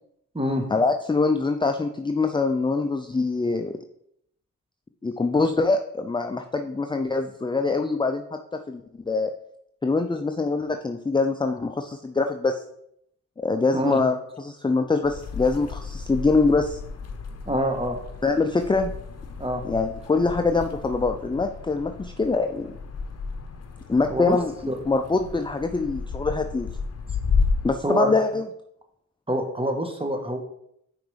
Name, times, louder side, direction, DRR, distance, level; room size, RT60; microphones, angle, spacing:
voice 1, 0.7-3.7 5.0-9.3 9.8-12.6 13.4-16.8 18.2-18.9 19.6-22.7 23.9-24.5 24.9-26.7 27.6-28.5, left 3 dB, 15° left, 6 dB, 0.5 m, -24 dB
sound 1, 15.0-27.7, left 4 dB, 50° left, 0.9 m, -32 dB
voice 2, 17.5-18.0 19.4-19.6 24.1-24.4 24.7-24.8 27.8-28.1 29.3-30.4, equal, 15° right, 4 dB, 1.5 m, -25 dB
6.0 x 4.9 x 5.0 m, 0.74 s
cardioid pair, 55°, 34 cm